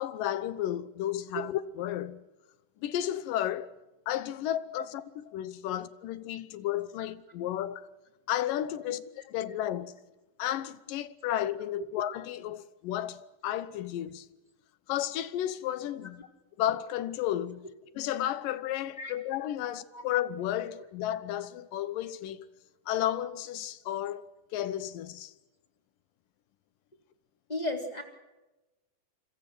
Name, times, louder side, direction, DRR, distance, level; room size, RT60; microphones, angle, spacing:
voice 1, 0.0-2.2 2.8-3.7 4.1-7.9 8.3-10.0 10.4-14.3 14.9-16.3 16.6-17.7 18.0-22.5 22.9-25.3, left 12 dB, 85° left, 2.7 m, -33 dB
voice 2, 27.5-28.0, left 1 dB, 10° left, 3.2 m, -33 dB
28.5 x 25.5 x 6.2 m
omnidirectional pair, 3.9 m